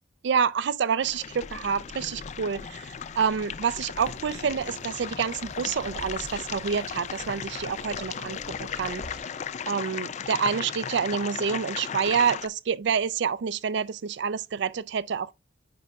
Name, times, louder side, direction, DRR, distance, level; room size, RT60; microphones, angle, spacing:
voice 1, 0.2-9.0 9.7-15.3, right 6 dB, 60° right, 0.4 m, -28 dB
sound 1, 1.0-12.5, left 7 dB, 35° left, 0.3 m, -36 dB
sound 2, 3.9-9.2, left 1 dB, 85° left, 1.9 m, -45 dB
9.4 x 5.0 x 2.3 m
head